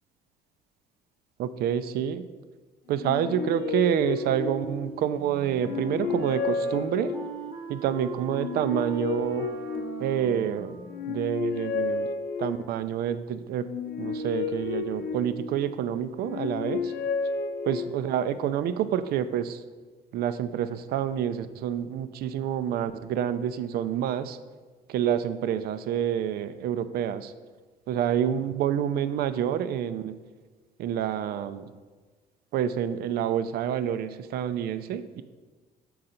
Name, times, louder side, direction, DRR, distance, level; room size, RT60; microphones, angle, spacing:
voice 1, 1.4-2.3 2.9-7.1 7.7-9.5 10.0-10.8 11.1-12.1 12.4-13.7 14.0-16.9 17.7-19.6 20.1-24.4 24.9-27.3 27.9-30.2 30.8-31.6 32.5-35.2, right 9 dB, 65° right, 12 dB, 0.4 m, -28 dB
sound 1, 2.9-5.1 5.5-7.6 8.3-10.4 10.9-12.9 13.6-15.7 16.2-18.2, left 4 dB, 70° left, 0.6 m, -32 dB
Wind instrument woodwind instrument, 5.1-11.2, right 4 dB, 30° right, 0.7 m, -41 dB
6.5 x 3.9 x 4.2 m, 1.4 s
cardioid pair, 110°, 17 cm